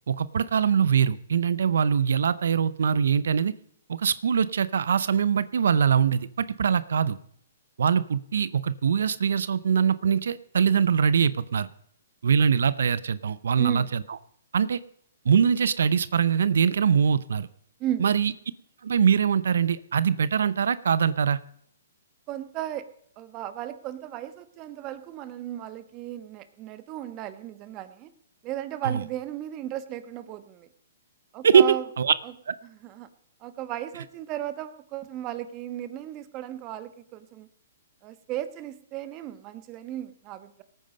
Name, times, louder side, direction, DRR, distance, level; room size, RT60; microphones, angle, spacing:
voice 1, 0.1-3.5 3.9-7.2 7.8-11.7 12.2-13.8 14.5-14.8 15.2-17.5 18.0-18.3 18.8-21.4 28.9-29.0 31.4-32.1 32.5-32.6, right 7 dB, 75° right, 17 dB, 0.6 m, -23 dB
voice 2, 22.3-22.8 23.2-28.1 28.4-30.7 31.3-31.8 32.2-32.3 32.6-33.1 33.4-37.5 38.0-40.6, right 12 dB, 30° right, 12 dB, 1.2 m, -35 dB
18.5 x 9.2 x 5.3 m, 0.65 s
hypercardioid pair, 145°, 0 cm